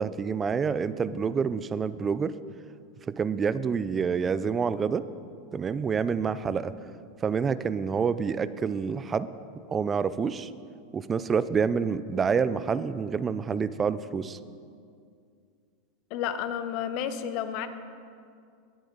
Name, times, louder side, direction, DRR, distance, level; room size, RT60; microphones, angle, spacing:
voice 1, 0.0-2.3 3.1-5.0 5.5-6.7 7.2-9.3 9.7-10.5 10.9-14.4, right 6 dB, 25° right, 15 dB, 0.5 m, -27 dB
voice 2, 16.1-17.7, left 9 dB, 55° left, 10 dB, 1.0 m, -31 dB
21.0 x 8.9 x 4.0 m, 2.3 s
hypercardioid pair, 110°, 0 cm